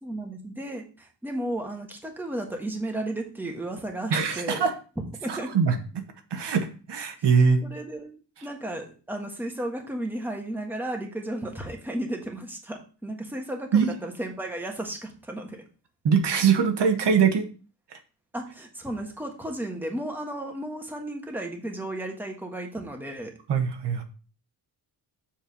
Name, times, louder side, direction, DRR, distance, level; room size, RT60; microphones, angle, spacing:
voice 1, 0.0-4.7 5.2-5.5 7.6-15.6 18.3-23.3, right 1 dB, 5° right, 2 dB, 1.4 m, -34 dB
voice 2, 4.1-4.7 5.3-6.0 6.3-7.6 13.7-13.9 16.0-17.5 23.5-24.0, right 6 dB, 70° right, 5 dB, 1.4 m, -22 dB
7.3 x 4.6 x 6.9 m, 0.36 s
wide cardioid pair, 165°, 43 cm